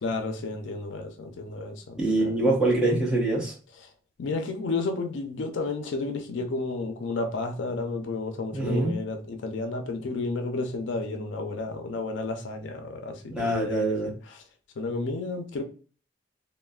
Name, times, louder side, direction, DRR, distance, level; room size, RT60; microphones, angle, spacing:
voice 1, 0.0-2.4 3.8-3.9 4.2-14.4 14.8-15.6, left 3 dB, 75° left, 0.4 m, -32 dB
voice 2, 1.9-3.5 8.5-8.9 13.3-14.1, right 2 dB, 5° right, 0.8 m, -24 dB
3.1 x 2.1 x 2.3 m
head